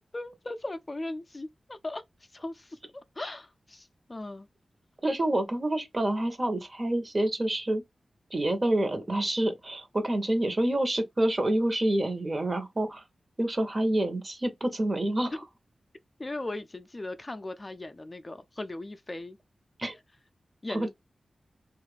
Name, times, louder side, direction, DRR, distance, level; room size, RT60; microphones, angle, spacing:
voice 1, 0.1-2.0 2.3-4.5 16.2-19.4 20.6-20.9, left 2 dB, 35° left, 0.4 m, -38 dB
voice 2, 5.0-7.8 8.3-13.0 13.4-15.4 19.8-19.9 20.7-20.9, right 1 dB, 40° right, 0.9 m, -27 dB
3.1 x 2.4 x 3.2 m
cardioid pair, 60°, 0 cm